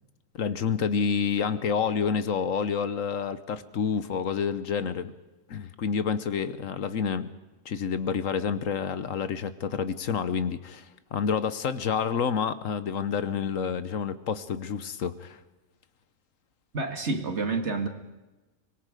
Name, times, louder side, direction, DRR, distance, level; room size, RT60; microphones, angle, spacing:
voice 1, 0.3-5.1 5.5-7.3 7.6-15.4, left 6 dB, 70° left, 13 dB, 1.3 m, -28 dB
voice 2, 16.7-17.9, right 3 dB, 50° right, 6 dB, 2.2 m, -28 dB
24.5 x 22.0 x 5.0 m, 1.1 s
omnidirectional pair, 1.5 m